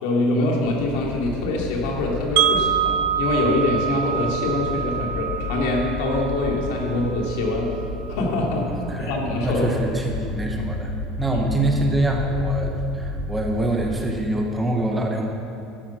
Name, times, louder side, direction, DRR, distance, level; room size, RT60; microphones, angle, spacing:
voice 1, 0.0-7.7 8.1-8.7 9.0-9.7 11.3-11.4, left 2 dB, 70° left, -1 dB, 2.6 m, -24 dB
sound 1, 0.6-13.8, left 2 dB, 85° left, 3.8 m, -32 dB
Wind chime, 2.4-8.3, right 9 dB, 60° right, 0.7 m, -26 dB
voice 2, 8.7-9.2 9.4-10.9 11.2-15.3, right 1 dB, 10° right, 1 dB, 0.9 m, -24 dB
12.0 x 10.5 x 6.1 m, 2.7 s
cardioid pair, 175°, 0 cm